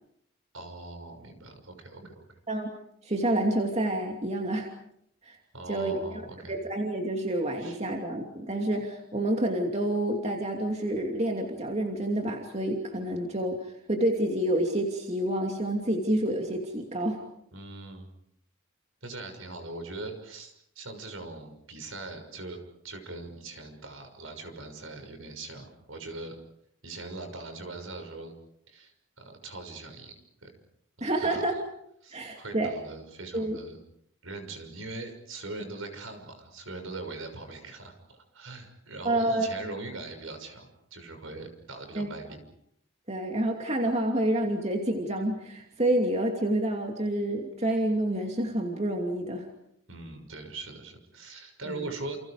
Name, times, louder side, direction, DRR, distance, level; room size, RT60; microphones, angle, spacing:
voice 1, 0.5-2.3 5.5-6.6 7.6-7.8 17.5-18.1 19.0-22.6 22.8-26.4 26.8-28.3 28.7-30.2 30.4-30.6 31.0-31.1 31.3-31.6 32.0-33.8 34.2-42.4 49.9-52.2, right 2 dB, 70° right, 6 dB, 6.2 m, -41 dB
voice 2, 3.0-4.7 5.3-5.4 5.7-5.9 6.5-17.2 31.0-31.6 32.1-32.7 33.3-33.6 39.0-39.5 42.0-42.1 43.1-49.5 51.7-51.9, right 1 dB, 30° right, 2 dB, 2.8 m, -28 dB
29.5 x 29.5 x 5.0 m, 0.73 s
head